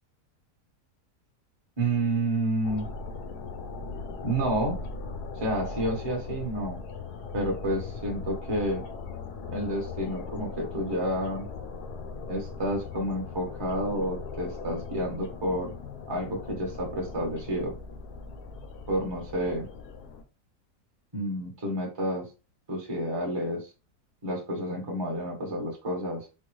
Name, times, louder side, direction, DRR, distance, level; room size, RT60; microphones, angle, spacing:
voice 1, 1.8-2.9 4.2-4.7 5.4-6.8 7.3-8.8 9.5-11.5 12.3-15.7 16.1-17.7 18.9-19.7 21.1-22.3 22.7-23.7 24.2-26.3, right 1 dB, 20° right, -2 dB, 0.9 m, -30 dB
sound 1, 2.6-20.2, left 4 dB, 75° left, 1.1 m, -39 dB
4.3 x 2.1 x 3.1 m, 0.30 s
omnidirectional pair, 1.8 m